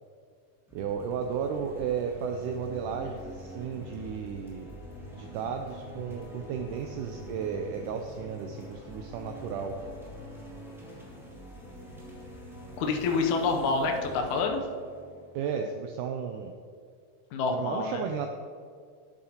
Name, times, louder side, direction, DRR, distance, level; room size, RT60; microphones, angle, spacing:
sound 1, 0.7-16.1, equal, ahead, 0.9 m, -45 dB
voice 1, 0.7-4.7 5.1-9.8 15.3-16.5 17.5-18.3, right 7 dB, 80° right, 4 dB, 1.9 m, -34 dB
voice 2, 12.8-14.6 17.3-18.0, left 4 dB, 75° left, 3 dB, 1.9 m, -27 dB
11.5 x 8.1 x 2.9 m, 2.2 s
omnidirectional pair, 4.0 m